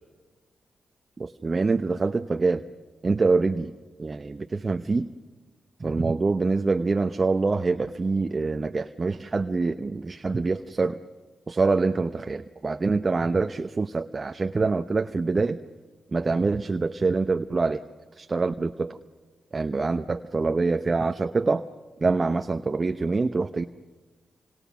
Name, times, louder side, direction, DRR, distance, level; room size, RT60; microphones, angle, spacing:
voice 1, 1.2-2.6 3.0-3.7 4.0-5.1 5.8-11.0 11.5-15.6 16.1-17.8 18.1-19.0 19.5-21.7 22.0-23.6, right 3 dB, 40° right, 8 dB, 0.9 m, -25 dB
29.0 x 26.5 x 6.2 m, 1.4 s
supercardioid pair, 40°, 0 cm